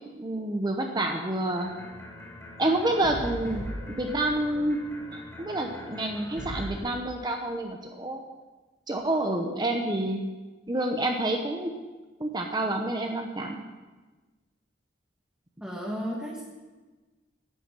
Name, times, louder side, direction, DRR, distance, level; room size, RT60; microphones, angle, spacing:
voice 1, 0.1-1.7 2.6-4.8 5.1-8.2 8.9-10.2 10.7-11.7 12.2-13.6, right 1 dB, 25° right, 2 dB, 0.9 m, -28 dB
sound 1, 1.6-6.8, left 1 dB, 15° left, 2.4 m, -40 dB
voice 2, 15.6-16.4, equal, 5° right, -4 dB, 1.7 m, -33 dB
11.0 x 9.2 x 7.5 m, 1.3 s
head